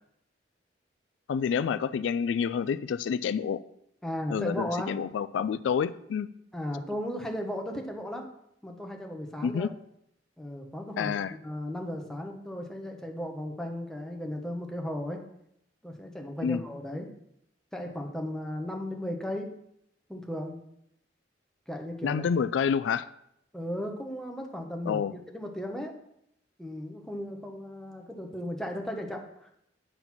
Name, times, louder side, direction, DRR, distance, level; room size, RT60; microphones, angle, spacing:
voice 1, 1.3-3.6 4.3-6.3 9.4-9.7 11.0-11.3 16.4-16.6 22.0-23.1 24.9-25.1, left 7 dB, 85° left, 14 dB, 0.3 m, -28 dB
voice 2, 4.0-4.9 6.5-8.3 8.6-9.7 10.4-15.2 15.8-17.1 17.7-19.5 20.1-20.6 21.7-22.3 23.5-25.9 26.6-29.5, left 1 dB, 5° left, 2 dB, 1.0 m, -36 dB
8.8 x 4.0 x 5.9 m, 0.75 s
head